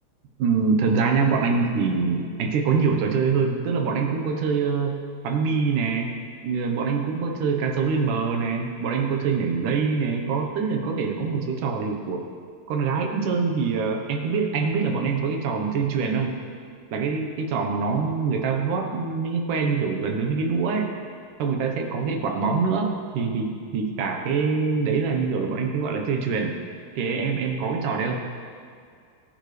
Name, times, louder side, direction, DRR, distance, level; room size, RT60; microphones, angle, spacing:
voice 1, 0.4-5.0 5.2-6.1 6.4-12.2 12.7-16.4 16.9-20.9 21.4-22.9 23.1-26.5 27.0-28.2, right 5 dB, 65° right, 2 dB, 2.4 m, -24 dB
25.0 x 11.0 x 3.4 m, 2.2 s
omnidirectional pair, 4.4 m